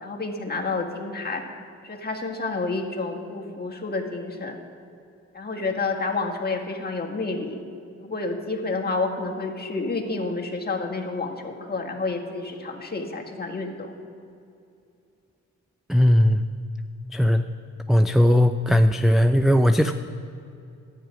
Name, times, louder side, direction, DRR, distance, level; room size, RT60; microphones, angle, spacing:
voice 1, 0.0-1.4 1.8-4.6 5.3-7.6 8.0-13.9, left 3 dB, 30° left, 1 dB, 1.7 m, -29 dB
voice 2, 15.9-16.4 17.1-17.4 17.9-19.9, left 1 dB, ahead, 8 dB, 0.4 m, -18 dB
11.0 x 8.9 x 5.0 m, 2.6 s
supercardioid pair, 55°, 31 cm